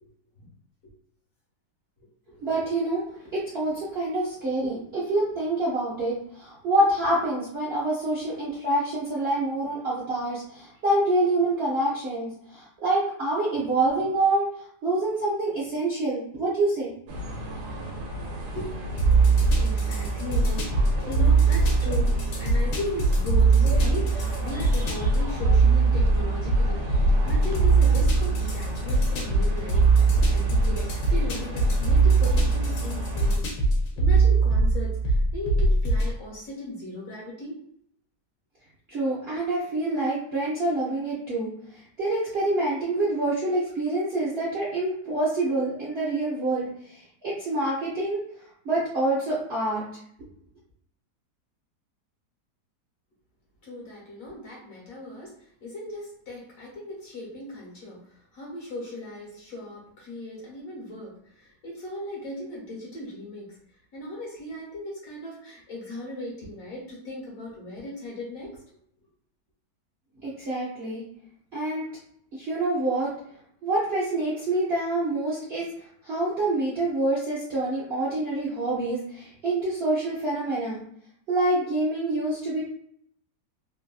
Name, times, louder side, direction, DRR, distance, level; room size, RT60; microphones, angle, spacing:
voice 1, 2.4-14.5 14.8-16.9 38.9-41.5 42.0-48.2 48.6-49.8 70.2-71.0 71.5-71.8 72.3-73.1 73.6-75.7 76.0-80.8 81.3-82.6, right 2 dB, 55° right, -7 dB, 0.7 m, -26 dB
sound 1, 17.1-33.4, equal, 75° right, 1.1 m, -34 dB
sound 2, 19.0-36.1, right 3 dB, 90° left, 1.4 m, -21 dB
voice 2, 19.6-33.5 34.0-37.6 53.6-63.6 63.9-68.6, left 1 dB, 55° left, -5 dB, 1.4 m, -37 dB
3.2 x 2.4 x 2.3 m, 0.68 s
omnidirectional pair, 1.8 m